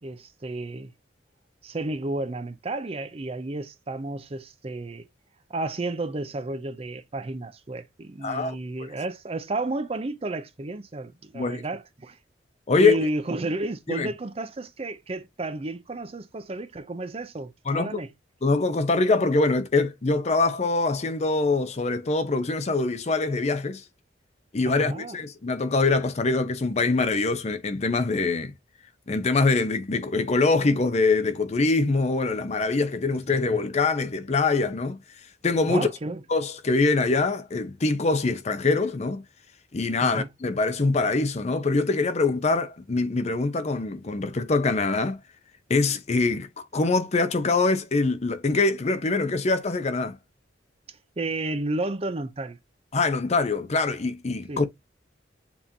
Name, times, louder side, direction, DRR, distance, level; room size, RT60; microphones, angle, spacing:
voice 1, 0.0-0.9 1.6-5.1 5.5-12.2 12.8-18.1 24.6-25.2 33.3-33.6 35.7-36.2 40.0-40.3 51.2-52.6 54.5-54.6, right 2 dB, 30° right, 0.5 m, -32 dB
voice 2, 8.2-8.6 11.3-11.6 12.7-13.0 13.9-14.1 17.7-18.0 18.4-23.8 24.5-28.5 29.1-35.0 35.4-35.9 36.3-39.2 39.7-45.2 45.7-50.2 52.9-54.7, left 3 dB, 35° left, 0.5 m, -24 dB
7.0 x 2.9 x 2.7 m
head